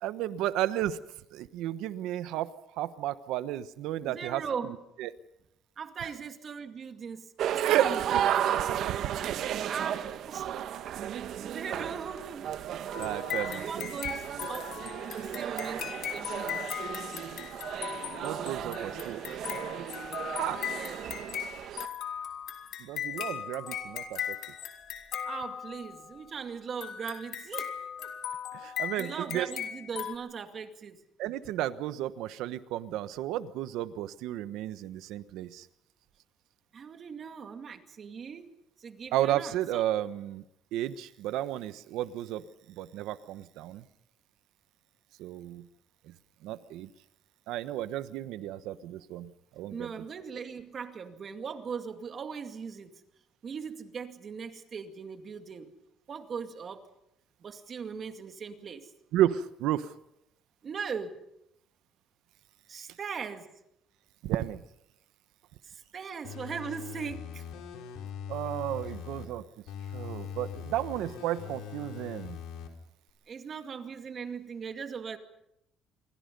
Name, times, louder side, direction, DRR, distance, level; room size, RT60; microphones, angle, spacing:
voice 1, 0.0-1.0 1.3-2.5 2.8-5.1 7.6-8.2 8.5-9.0 13.0-13.9 18.2-19.2 20.4-20.6 22.8-24.4 28.5-29.5 31.2-35.7 39.1-40.4 40.7-42.4 42.8-43.8 45.2-45.7 46.1-46.2 46.4-46.9 47.5-49.9 59.1-59.9 64.2-64.6 68.3-69.4 69.9-72.4, right 13 dB, 80° right, 13 dB, 1.1 m, -32 dB
voice 2, 4.0-4.7 5.8-7.2 7.7-8.0 9.6-10.5 11.1-12.5 13.0-14.7 15.0-16.6 20.7-21.0 25.2-27.7 29.0-31.0 36.7-38.5 38.8-39.8 49.7-52.9 53.4-55.7 56.1-56.8 57.4-58.9 60.6-61.2 62.7-63.5 65.6-67.4 73.3-75.2, right 6 dB, 35° right, 7 dB, 2.3 m, -39 dB
sound 1, 7.4-21.9, right 10 dB, 60° right, 1.2 m, -34 dB
sound 2, 12.9-26.0 26.8-30.1, left 9 dB, 65° left, 3.4 m, -38 dB
sound 3, 66.2-69.3 69.7-72.7 73.1-73.2, left 7 dB, 80° left, 4.4 m, -41 dB
27.5 x 23.5 x 5.5 m, 0.81 s
cardioid pair, 140°, 0 cm